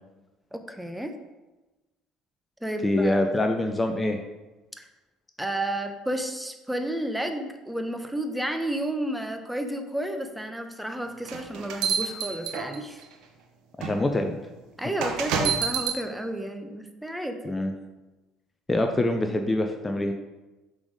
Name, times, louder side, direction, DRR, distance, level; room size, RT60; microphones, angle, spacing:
voice 1, 0.5-1.1 2.6-3.2 4.8-4.9 5.4-13.0 14.8-17.5, right 1 dB, 5° right, 6 dB, 0.8 m, -31 dB
voice 2, 2.8-4.2 13.8-14.4 17.4-17.7 18.7-20.1, left 1 dB, 20° left, 5 dB, 0.6 m, -25 dB
sound 1, 11.3-13.0 13.8-13.9 15.0-16.0, right 6 dB, 65° right, 0.7 m, -27 dB
5.9 x 4.0 x 5.0 m, 1.1 s
hypercardioid pair, 60°, 0 cm